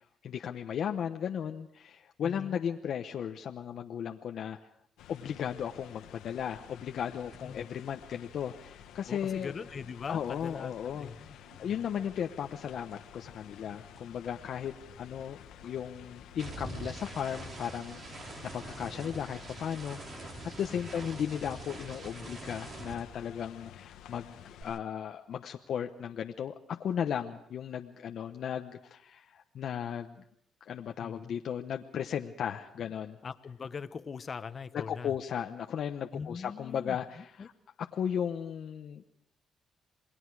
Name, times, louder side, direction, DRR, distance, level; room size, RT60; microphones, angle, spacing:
voice 1, 0.0-4.6 5.1-9.5 10.1-30.2 30.6-33.2 34.7-37.5 37.9-39.0, left 8 dB, 65° left, 4 dB, 1.0 m, -36 dB
voice 2, 2.2-2.6 7.4-7.6 9.1-11.7 20.7-21.0 31.0-31.4 33.2-35.1 36.1-37.5, left 5 dB, 45° left, 12 dB, 1.1 m, -42 dB
sound 1, 5.0-24.8, left 11 dB, 90° left, 1.2 m, -52 dB
sound 2, 7.3-7.5 7.8-12.2 12.4-23.7 24.0-24.6, right 2 dB, 50° right, 4.0 m, -47 dB
28.0 x 20.5 x 4.8 m, 0.72 s
cardioid pair, 90°, 0 cm